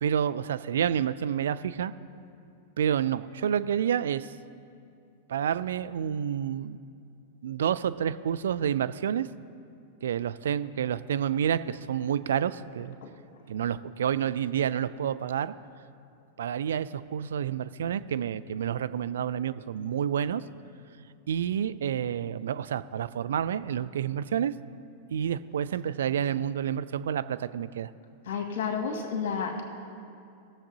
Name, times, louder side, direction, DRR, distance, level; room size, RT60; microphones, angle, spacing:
voice 1, 0.0-1.9 2.8-4.3 5.3-6.8 7.4-9.3 10.0-13.0 13.5-15.5 16.4-20.4 21.3-24.5 25.1-27.9, right 9 dB, 70° right, 14 dB, 0.3 m, -29 dB
voice 2, 28.3-29.6, left 6 dB, 60° left, 3 dB, 1.9 m, -30 dB
20.0 x 7.2 x 2.8 m, 2.6 s
figure-of-eight pair, 95°, 0 cm